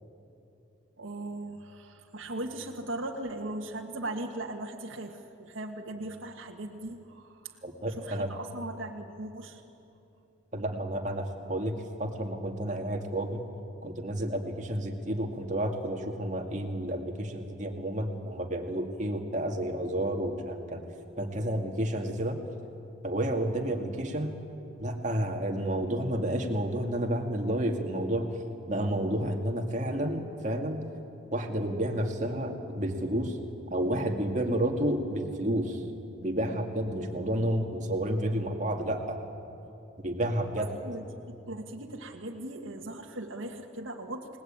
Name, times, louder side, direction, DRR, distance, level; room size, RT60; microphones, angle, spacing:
voice 1, 1.0-7.6 7.8-9.6 40.7-44.4, right 1 dB, 80° right, 0 dB, 1.7 m, -39 dB
voice 2, 7.6-8.3 10.5-13.4 13.8-20.8 21.2-22.4 23.0-24.3 24.8-28.3 28.7-30.8 31.3-33.4 33.7-35.8 36.2-39.2 40.0-40.7, right 1 dB, 35° right, 3 dB, 2.3 m, -30 dB
29.5 x 19.0 x 8.9 m, 2.8 s
head